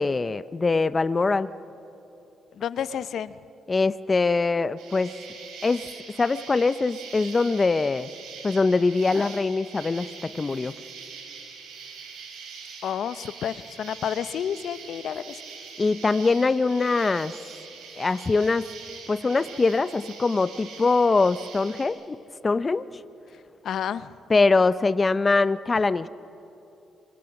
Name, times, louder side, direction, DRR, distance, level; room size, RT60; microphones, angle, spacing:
voice 1, 0.0-1.5 3.7-5.1 5.6-5.9 6.2-8.1 8.4-10.7 15.8-17.3 18.0-18.7 19.1-22.2 22.4-22.9 24.3-26.1, left 3 dB, 30° left, 15 dB, 0.5 m, -23 dB
voice 2, 2.5-3.4 12.8-15.4 23.6-24.1, left 9 dB, 65° left, 15 dB, 0.7 m, -30 dB
Insect, 4.8-21.9, right 5 dB, 85° right, 6.1 m, -43 dB
27.5 x 25.0 x 6.0 m, 3.0 s
cardioid pair, 90°, 0 cm